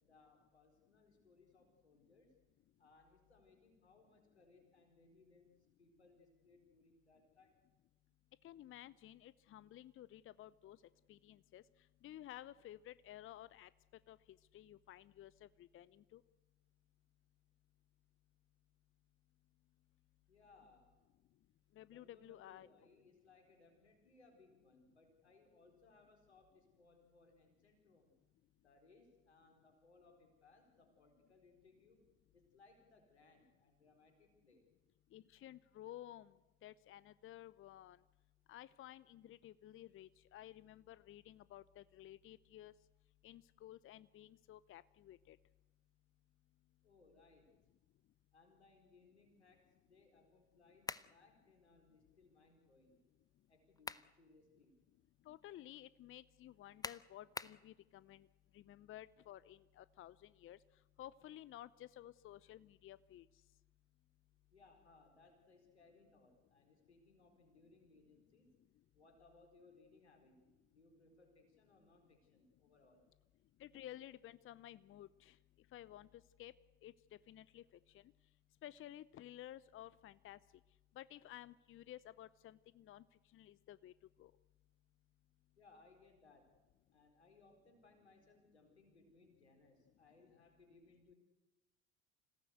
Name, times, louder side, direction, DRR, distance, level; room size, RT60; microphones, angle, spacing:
voice 1, 0.0-2.4 2.8-7.6 20.3-21.0 21.9-28.2 28.6-32.0 32.3-34.7 46.8-47.6 48.3-53.0 53.5-54.8 64.5-68.6 68.9-73.0 85.6-86.5 86.9-91.1, left 3 dB, 90° left, 4 dB, 4.4 m, -67 dB
voice 2, 8.4-10.8 11.1-11.6 12.0-13.7 14.1-16.2 21.8-22.7 35.1-36.3 36.6-38.0 38.5-42.7 43.2-45.4 55.2-58.3 58.5-60.6 61.0-63.3 73.6-75.4 75.7-76.5 76.8-76.9 77.3-78.0 78.6-80.4 81.0-83.0 83.3-83.9 84.2-84.3, left 13 dB, 40° left, 18 dB, 0.7 m, -54 dB
sound 1, 50.8-51.2 53.5-54.1 54.6-54.7 56.8-57.6, left 3 dB, 10° left, 0.8 m, -45 dB
26.5 x 17.0 x 8.1 m, 1.0 s
hypercardioid pair, 60°, 32 cm